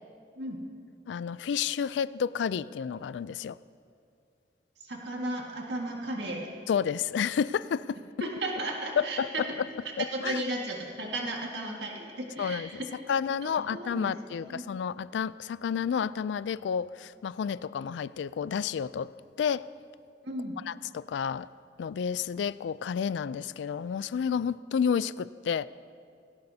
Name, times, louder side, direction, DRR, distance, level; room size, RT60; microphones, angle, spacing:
voice 1, 1.1-3.6 6.7-8.0 9.2-9.3 10.0-10.4 12.4-12.7 13.1-19.1 19.4-19.7 20.7-21.5 21.8-25.7, left 7 dB, 85° left, 18 dB, 0.3 m, -30 dB
voice 2, 4.8-6.5 8.2-9.4 9.8-12.9 13.4-14.7 20.2-20.6, right 1 dB, 75° right, 0 dB, 1.8 m, -35 dB
18.5 x 17.5 x 2.8 m, 2.4 s
head